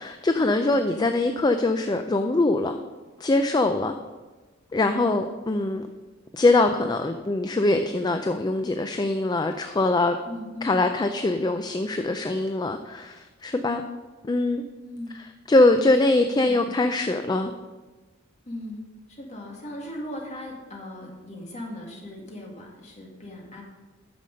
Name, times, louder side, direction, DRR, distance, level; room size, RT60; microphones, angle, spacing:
voice 1, 0.0-2.8 3.2-3.9 4.7-5.8 6.3-10.2 10.6-13.8 14.3-14.6 15.1-17.5, left 2 dB, 20° left, 7 dB, 0.4 m, -23 dB
voice 2, 10.2-10.8 13.6-13.9 14.8-15.1 15.8-16.7 18.5-18.8 19.1-23.6, left 1 dB, 35° left, -1 dB, 2.1 m, -38 dB
9.3 x 6.7 x 5.3 m, 1.2 s
head